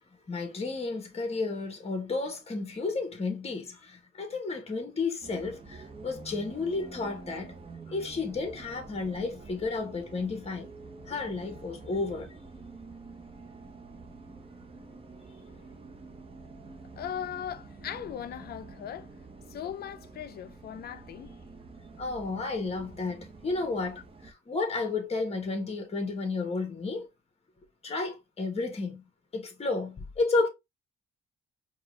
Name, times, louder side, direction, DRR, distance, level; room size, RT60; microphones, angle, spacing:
voice 1, 0.3-7.6 7.9-10.7 11.1-12.3 22.0-27.1 27.8-29.1 29.3-30.5, left 3 dB, 30° left, 1.4 m, -32 dB
Bus, 5.2-24.3, right 3 dB, 30° right, 0.9 m, -48 dB
voice 2, 17.0-19.1 19.5-21.4, left 9 dB, 55° left, 0.5 m, -38 dB
4.6 x 2.5 x 3.2 m
cardioid pair, 90°, 20 cm